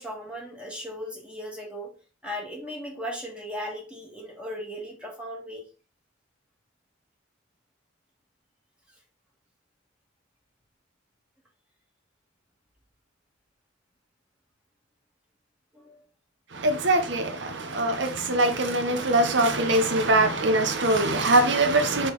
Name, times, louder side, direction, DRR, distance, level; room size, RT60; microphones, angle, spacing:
voice 1, 0.0-1.9 2.2-5.7 15.7-16.0, equal, 5° right, 1.9 m, -37 dB
voice 2, 16.6-17.2 17.7-22.1, right 2 dB, 65° right, 1.1 m, -22 dB
6.4 x 4.0 x 3.9 m
head